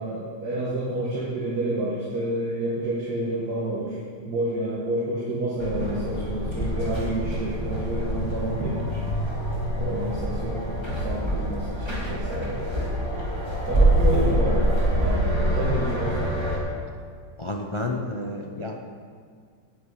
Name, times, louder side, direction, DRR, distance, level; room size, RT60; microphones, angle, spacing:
voice 1, 0.0-9.0 9.8-12.6 13.7-16.3, right 1 dB, 60° right, -6 dB, 2.2 m, -29 dB
sound 1, 5.6-16.6, right 1 dB, 15° right, 2.2 m, -25 dB
voice 2, 17.4-18.8, left 2 dB, 45° left, 2 dB, 0.3 m, -30 dB
9.0 x 7.8 x 8.5 m, 2.1 s
omnidirectional pair, 1.9 m